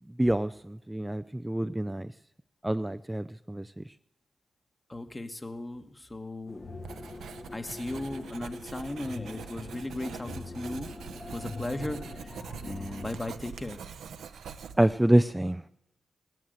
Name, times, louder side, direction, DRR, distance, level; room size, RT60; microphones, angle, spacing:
voice 1, 0.2-2.1 2.6-3.8 14.8-15.7, right 1 dB, 10° right, 11 dB, 0.4 m, -26 dB
voice 2, 4.9-6.6 7.5-10.9 11.3-13.8, left 2 dB, 25° left, 8 dB, 1.6 m, -37 dB
sound 1, 6.5-13.1, left 3 dB, 50° left, 1.5 m, -43 dB
Writing, 6.8-15.0, right 7 dB, 85° right, 0.8 m, -44 dB
16.5 x 11.0 x 8.0 m, 0.91 s
supercardioid pair, 45°, 0 cm